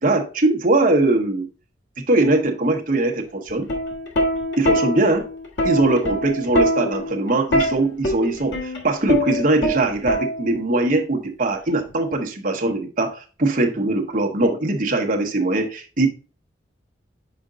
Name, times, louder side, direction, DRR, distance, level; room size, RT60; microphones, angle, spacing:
voice 1, 0.0-1.5 2.1-3.7 4.6-5.3 5.6-16.1, right 2 dB, 45° right, 0.9 m, -21 dB
Plucked string instrument, 3.5-10.7 11.8-12.1, left 1 dB, 80° left, 1.5 m, -23 dB
5.1 x 5.0 x 3.7 m
head